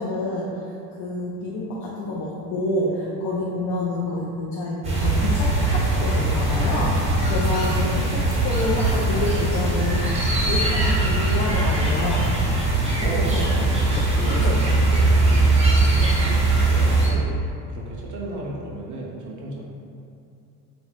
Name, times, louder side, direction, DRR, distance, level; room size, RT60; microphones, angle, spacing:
voice 1, 0.0-12.3 13.0-13.4 13.9-14.1 14.4-14.6, left 2 dB, 60° left, -5 dB, 0.6 m, -28 dB
sound 1, 4.8-17.1, right 2 dB, 15° right, 0.8 m, -20 dB
voice 2, 13.0-14.5 14.9-19.6, right 2 dB, 45° right, -3 dB, 0.5 m, -34 dB
2.5 x 2.2 x 3.3 m, 2.6 s
supercardioid pair, 100°, 44 cm